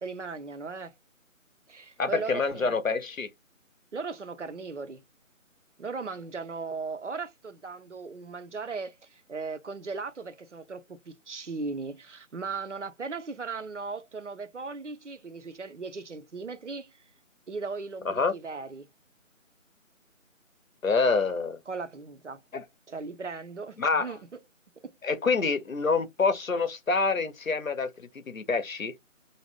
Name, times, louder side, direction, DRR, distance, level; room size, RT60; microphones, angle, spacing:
voice 1, 0.0-0.9 1.7-2.8 3.9-5.0 5.8-17.0 17.5-18.9 21.7-22.4 22.9-24.2 24.8-25.0, right 4 dB, 60° right, 0.5 m, -37 dB
voice 2, 2.0-3.3 18.1-18.4 20.8-21.6 22.5-22.6 23.8-24.2 25.0-28.9, left 4 dB, 75° left, 0.8 m, -27 dB
2.5 x 2.1 x 3.4 m
figure-of-eight pair, 165°, 41 cm